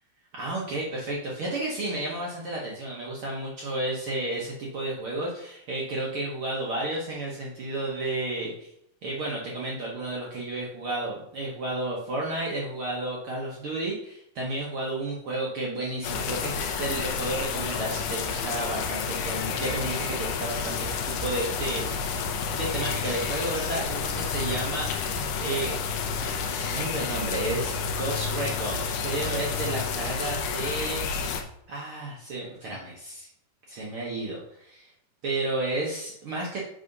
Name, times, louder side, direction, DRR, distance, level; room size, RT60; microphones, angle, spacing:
voice 1, 0.3-8.7 9.0-22.2 22.5-25.8 26.2-31.0 31.7-33.3 33.7-34.9 35.2-36.7, right 2 dB, 70° right, -3 dB, 1.2 m, -32 dB
sound 1, 16.0-31.4, left 6 dB, 75° left, 2.2 m, -30 dB
8.3 x 3.8 x 5.3 m, 0.74 s
omnidirectional pair, 4.0 m